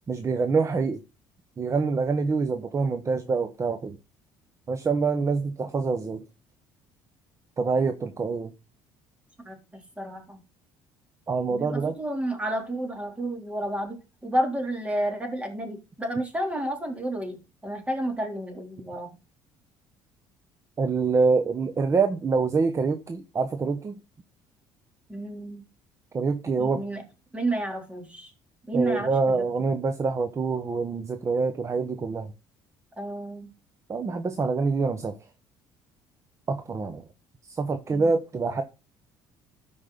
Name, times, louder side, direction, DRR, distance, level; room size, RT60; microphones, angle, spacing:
voice 1, 0.1-1.0 1.6-4.0 4.7-6.2 7.6-8.5 11.3-12.0 20.8-24.0 26.1-26.8 28.7-32.3 33.9-35.2 36.5-37.0 37.5-38.6, right 4 dB, 30° right, 1.1 m, -25 dB
voice 2, 9.4-10.4 11.5-17.4 17.6-19.2 25.1-25.6 26.5-27.0 27.3-28.3 28.7-29.4 33.0-33.5 37.9-38.1, right 1 dB, 15° right, 3.6 m, -31 dB
13.0 x 5.4 x 4.1 m
supercardioid pair, 85°, 9 cm